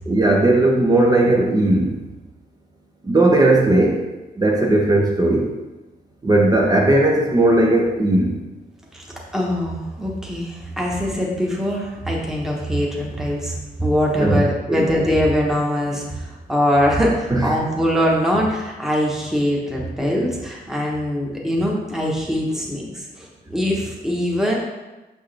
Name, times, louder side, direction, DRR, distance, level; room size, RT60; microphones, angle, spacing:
voice 1, 0.1-2.0 3.0-4.0 4.4-5.5 6.2-8.4 14.2-14.4 14.7-14.8 17.3-17.5, right 2 dB, 20° right, -1 dB, 0.7 m, -17 dB
voice 2, 9.3-24.6, equal, 5° right, -3 dB, 1.1 m, -22 dB
6.7 x 6.2 x 3.3 m, 1.1 s
wide cardioid pair, 150°, 18 cm